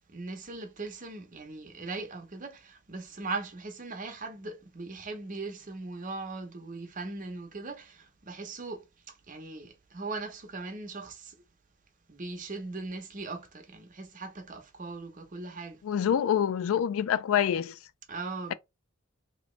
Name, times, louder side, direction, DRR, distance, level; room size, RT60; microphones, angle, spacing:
voice 1, 0.1-8.8 9.3-11.3 12.1-15.8 18.1-18.5, right 3 dB, 40° right, 0.8 m, -39 dB
voice 2, 15.8-17.7, left 9 dB, 80° left, 0.3 m, -26 dB
3.0 x 2.8 x 3.2 m
head